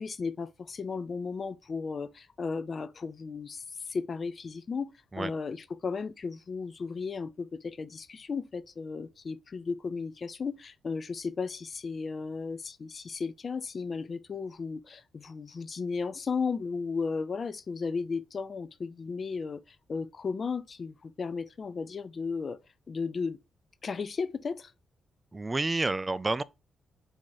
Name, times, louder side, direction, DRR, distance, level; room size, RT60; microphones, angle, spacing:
voice 1, 0.0-22.6 22.9-23.4 23.8-24.7, left 5 dB, 50° left, 0.4 m, -35 dB
voice 2, 25.3-26.4, right 2 dB, 25° right, 0.3 m, -29 dB
4.5 x 2.8 x 3.9 m
supercardioid pair, 50°, 0 cm